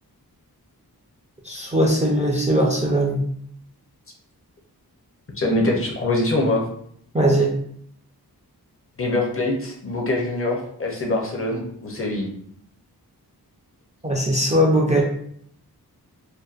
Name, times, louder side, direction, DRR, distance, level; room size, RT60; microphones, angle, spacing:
voice 1, 1.4-3.2 7.1-7.5 14.0-15.0, equal, 20° right, -2 dB, 0.3 m, -19 dB
voice 2, 5.4-6.7 9.0-12.3, left 2 dB, 35° left, 0 dB, 0.5 m, -23 dB
2.6 x 2.1 x 2.4 m, 0.66 s
wide cardioid pair, 105°, 38 cm